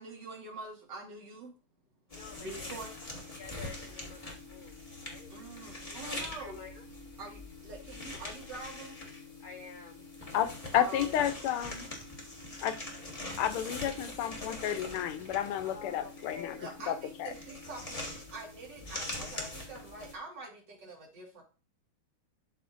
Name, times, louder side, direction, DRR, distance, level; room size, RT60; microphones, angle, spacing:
voice 1, 0.0-1.5 2.4-2.9 5.3-6.6 7.2-9.0 10.7-11.3 16.6-18.0 18.3-21.4, right 3 dB, 55° right, -1 dB, 2.4 m, -45 dB
voice 2, 2.1-2.8 3.4-5.3 5.7-6.7 9.4-10.0 15.6-16.9, left 6 dB, 75° left, 4 dB, 0.8 m, -49 dB
sound 1, 2.1-20.1, left 2 dB, 20° left, 1.2 m, -43 dB
voice 3, 10.3-11.9 12.6-12.7 13.4-16.6 16.9-17.0 17.2-17.3, left 10 dB, 90° left, 11 dB, 1.6 m, -31 dB
12.0 x 4.3 x 2.5 m, 0.34 s
omnidirectional pair, 2.4 m